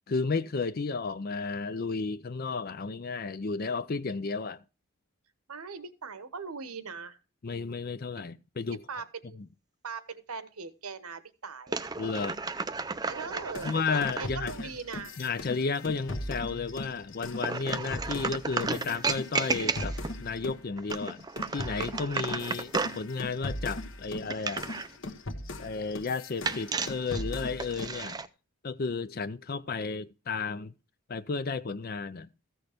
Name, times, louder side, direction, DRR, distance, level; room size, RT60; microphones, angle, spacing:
voice 1, 0.1-4.6 7.4-8.8 12.0-12.4 13.6-14.5 15.2-21.3 21.5-24.7 25.6-28.2 28.6-30.7 31.1-32.3, left 4 dB, 40° left, 0.5 m, -33 dB
voice 2, 5.5-7.2 8.9-9.4 9.8-12.0 13.1-13.7 14.2-15.2, right 5 dB, 90° right, 1.2 m, -40 dB
sound 1, 11.7-14.3 17.4-20.2 20.8-23.0 24.3-24.9 26.4-28.3, right 4 dB, 20° right, 0.4 m, -33 dB
sound 2, 13.5-20.6 20.9-28.0, left 1 dB, 60° left, 1.3 m, -39 dB
14.5 x 6.3 x 5.0 m
head